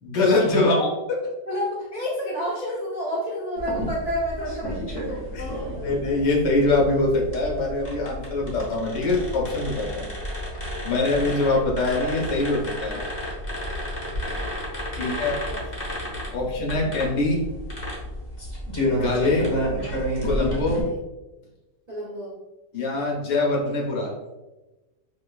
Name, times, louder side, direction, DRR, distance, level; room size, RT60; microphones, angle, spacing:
voice 1, 0.0-0.9 5.3-5.5 5.7-10.1 10.8-13.0 15.0-15.4 16.3-17.4 18.9-19.4 20.2-20.8 22.7-24.1, left 2 dB, 75° left, -2 dB, 1.5 m, -23 dB
voice 2, 0.6-0.9 1.5-6.3 10.8-11.2 15.0-15.6 16.3-16.9 20.8-21.0 21.9-22.3, equal, 65° right, -7 dB, 0.4 m, -31 dB
sound 1, 3.6-20.8, equal, 40° left, 0.6 m, -31 dB
4.8 x 2.2 x 2.3 m, 1.1 s
omnidirectional pair, 1.9 m